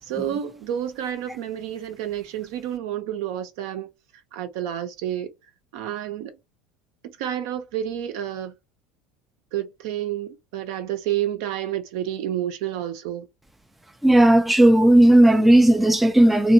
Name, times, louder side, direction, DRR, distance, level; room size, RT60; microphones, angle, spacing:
voice 1, 0.0-3.9 4.3-5.3 5.7-6.3 7.0-8.5 9.5-13.3, right 11 dB, 60° right, 0.6 m, -29 dB
voice 2, 14.0-16.5, right 1 dB, 5° right, 0.3 m, -15 dB
2.9 x 2.5 x 2.5 m
figure-of-eight pair, 70°, 3 cm